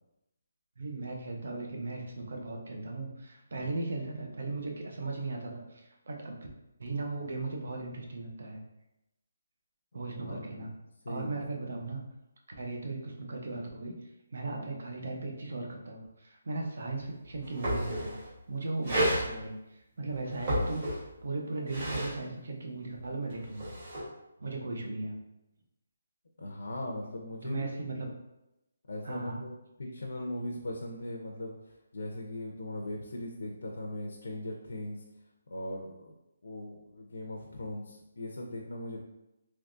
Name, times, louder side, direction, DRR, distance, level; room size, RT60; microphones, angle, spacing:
voice 1, 0.8-6.4 6.8-8.6 9.9-10.7 11.1-12.0 12.6-18.1 18.5-23.7 24.4-25.1 27.4-28.1 29.0-29.4, right 3 dB, 50° right, 1 dB, 0.6 m, -37 dB
voice 2, 10.0-10.7 11.0-11.4 26.4-27.9 28.9-31.6 31.9-35.0 35.5-36.1 36.4-39.0, left 1 dB, 75° left, 0 dB, 0.6 m, -39 dB
sound 1, 17.0-17.1 17.3-18.3 18.8-19.3 20.2-21.2 21.5-22.1 23.3-24.0, equal, 30° right, 1.2 m, -31 dB
3.4 x 2.9 x 2.5 m, 0.91 s
hypercardioid pair, 180°, 0 cm